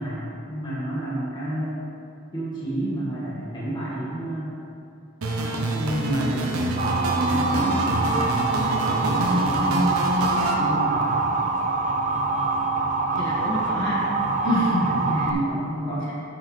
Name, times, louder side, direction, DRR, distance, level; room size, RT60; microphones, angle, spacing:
voice 1, 0.0-1.8 2.3-4.5 5.5-7.0 7.2-10.0 10.6-11.2 15.0-16.1, right 1 dB, 20° left, -8 dB, 1.6 m, -30 dB
sound 1, 5.2-10.5, right 1 dB, 80° right, 0.8 m, -26 dB
Motor vehicle (road) / Siren, 6.8-15.3, right 3 dB, 35° right, 0.4 m, -24 dB
voice 2, 13.2-14.0 14.4-15.2 15.6-16.1, equal, 55° left, -6 dB, 1.8 m, -27 dB
8.9 x 6.2 x 3.3 m, 2.7 s
head